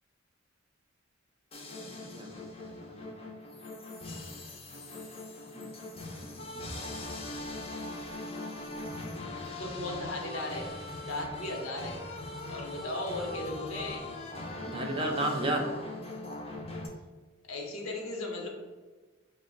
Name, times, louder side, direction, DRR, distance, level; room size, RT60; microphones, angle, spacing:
sound 1, 1.5-16.9, left 2 dB, 30° left, 0.6 m, -41 dB
voice 1, 1.8-2.3 2.6-3.1 5.5-5.8 6.6-6.7 14.6-15.7, right 1 dB, 25° right, 1 dB, 0.5 m, -33 dB
voice 2, 9.6-10.7 11.0-12.0 12.5-14.1 17.4-18.5, left 2 dB, 75° left, 1 dB, 0.9 m, -36 dB
5.3 x 2.2 x 3.8 m, 1.3 s
head